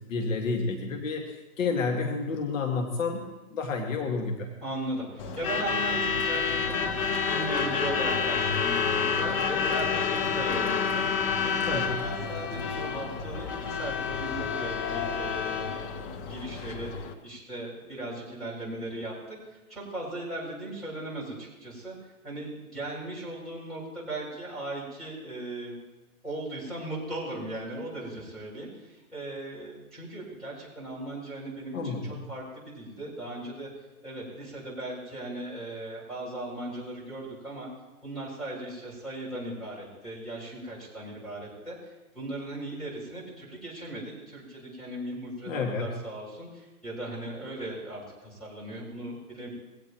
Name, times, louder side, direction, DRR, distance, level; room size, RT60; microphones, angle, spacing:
voice 1, 0.1-1.2 1.6-4.5 11.7-12.0 31.7-32.2 45.5-45.9, left 4 dB, 60° left, 2 dB, 2.1 m, -30 dB
voice 2, 4.6-16.0 16.2-21.9 22.2-25.8 26.2-33.7 34.0-37.7 38.0-49.5, right 1 dB, ahead, -6 dB, 7.3 m, -38 dB
Truck / Alarm, 5.2-17.1, left 6 dB, 20° left, 0.7 m, -29 dB
22.5 x 17.5 x 3.1 m, 1.1 s
hypercardioid pair, 145°, 45 cm